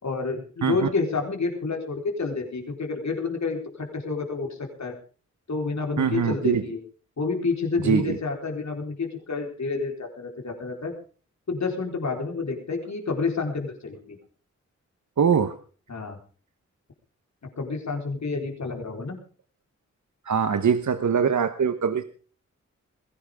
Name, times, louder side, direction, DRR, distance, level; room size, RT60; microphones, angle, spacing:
voice 1, 0.0-4.9 5.5-6.8 7.2-10.9 11.5-14.2 15.9-16.2 17.6-19.2, left 4 dB, 65° left, 2 dB, 4.3 m, -29 dB
voice 2, 6.0-6.6 7.8-8.2 15.2-15.5 20.2-22.0, right 6 dB, 70° right, 10 dB, 1.2 m, -22 dB
20.0 x 17.0 x 3.7 m, 0.39 s
wide cardioid pair, 70°, 30 cm